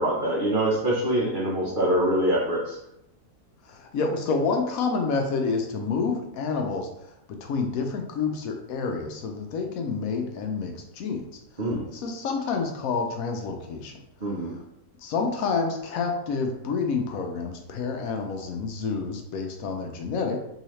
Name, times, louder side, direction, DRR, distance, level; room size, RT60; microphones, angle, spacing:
voice 1, 0.0-2.8 11.6-11.9 14.2-14.6, right 1 dB, 45° right, -5 dB, 0.8 m, -24 dB
voice 2, 3.7-6.9 7.3-11.2 11.9-14.0 15.0-20.4, left 4 dB, 75° left, 3 dB, 1.0 m, -28 dB
3.8 x 2.7 x 3.1 m, 0.81 s
omnidirectional pair, 1.6 m